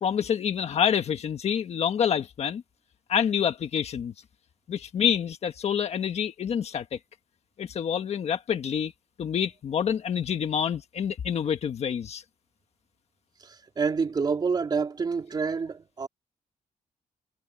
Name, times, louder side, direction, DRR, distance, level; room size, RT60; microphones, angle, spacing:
voice 1, 0.0-2.6 3.1-4.1 4.7-7.0 7.6-8.9 9.2-12.2, left 8 dB, 50° left, 1.5 m, -27 dB
voice 2, 13.4-16.1, right 5 dB, 30° right, 3.1 m, -28 dB
wide cardioid pair, 175°, 14 cm